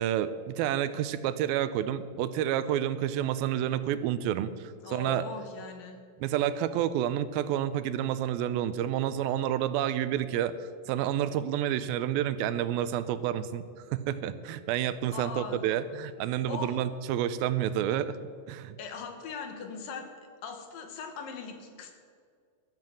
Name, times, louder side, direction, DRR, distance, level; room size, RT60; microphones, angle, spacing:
voice 1, 0.0-5.2 6.2-10.5 10.9-13.6 13.9-18.2 18.5-18.8, right 11 dB, 85° right, 13 dB, 2.4 m, -29 dB
voice 2, 4.8-6.0 15.1-15.6 16.5-16.8 18.8-20.1 20.4-21.9, left 5 dB, 75° left, 5 dB, 2.9 m, -39 dB
12.5 x 7.5 x 7.6 m, 2.1 s
omnidirectional pair, 4.2 m